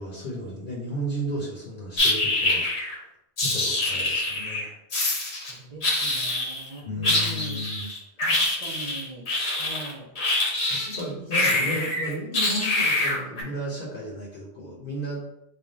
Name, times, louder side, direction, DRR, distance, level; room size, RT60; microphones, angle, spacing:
voice 1, 0.0-2.7 3.4-4.7 6.8-7.9 10.7-15.2, equal, 55° left, -4 dB, 1.0 m, -34 dB
sound 1, 2.0-3.0 3.4-4.6 4.9-5.5 5.8-6.7 7.0-11.0 11.3-13.4, left 2 dB, 75° left, 1.2 m, -25 dB
voice 2, 5.4-7.6 8.2-9.2 9.6-10.1 10.9-11.8, right 2 dB, 40° right, -5 dB, 0.7 m, -41 dB
3.4 x 2.3 x 3.8 m, 0.82 s
omnidirectional pair, 1.1 m